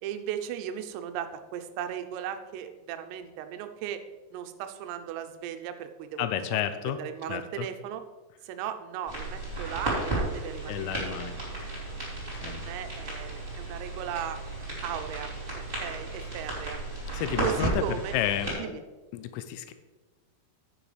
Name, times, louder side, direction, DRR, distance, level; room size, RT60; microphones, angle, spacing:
voice 1, 0.0-4.0 4.3-6.3 6.5-6.6 6.9-8.0 8.4-11.3 12.4-14.4 14.8-16.8 17.4-18.2 18.6-18.8, right 10 dB, 85° right, 8 dB, 3.4 m, -37 dB
voice 2, 6.2-7.0 7.3-7.7 10.7-11.3 12.4-12.7 17.1-17.8 18.1-18.8 19.1-19.7, left 11 dB, 90° left, 10 dB, 3.3 m, -31 dB
sound 1, 9.1-18.5, right 2 dB, 15° right, 2.3 m, -34 dB
10.0 x 9.3 x 3.3 m, 1.2 s
omnidirectional pair, 6.0 m